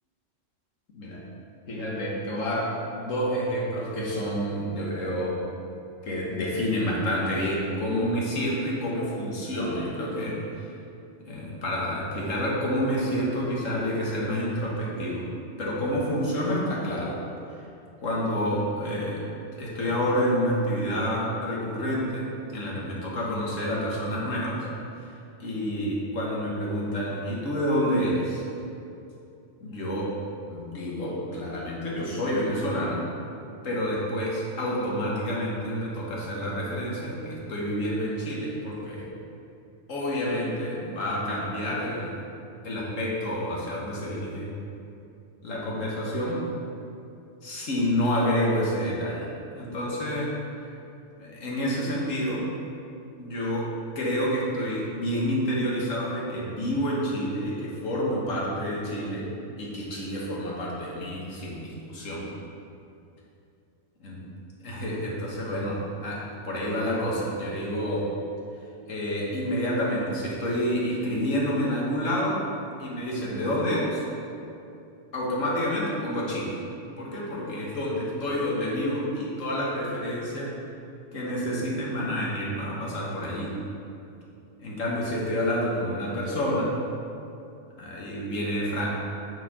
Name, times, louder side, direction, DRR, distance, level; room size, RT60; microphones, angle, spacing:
voice 1, 1.7-5.4 6.0-10.7 11.3-15.2 15.6-17.2 18.0-19.2 19.6-22.3 22.5-24.6 25.0-25.1 25.4-28.4 29.6-30.1 30.5-33.0 33.6-39.1 39.9-42.1 42.6-44.5 45.4-46.4 47.4-50.3 51.2-52.5 53.2-53.6 53.9-59.2 59.6-62.2 64.0-64.2 64.6-68.1 68.9-72.4 72.8-74.0 75.1-76.6 77.0-80.5 81.1-83.5 84.6-86.7 87.8-88.9, equal, 80° left, -4 dB, 1.7 m, -28 dB
8.9 x 4.5 x 4.2 m, 2.7 s
omnidirectional pair, 1.3 m